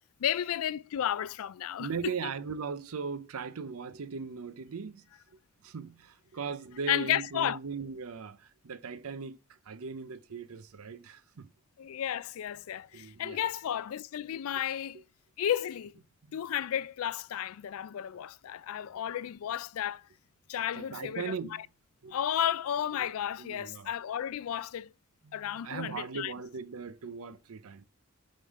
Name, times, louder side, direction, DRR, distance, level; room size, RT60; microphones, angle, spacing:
voice 1, 0.2-1.9 6.9-7.6 11.8-15.0 15.4-15.9 16.3-20.0 20.5-21.4 22.1-24.9 25.3-26.3, left 10 dB, 70° left, 0.3 m, -33 dB
voice 2, 1.8-5.0 5.6-11.5 12.9-13.4 14.3-14.4 16.2-16.4 20.7-21.6 22.0-22.2 23.0-23.1 23.4-23.9 25.2-27.8, right 5 dB, 75° right, 0.6 m, -39 dB
5.5 x 5.2 x 3.5 m
head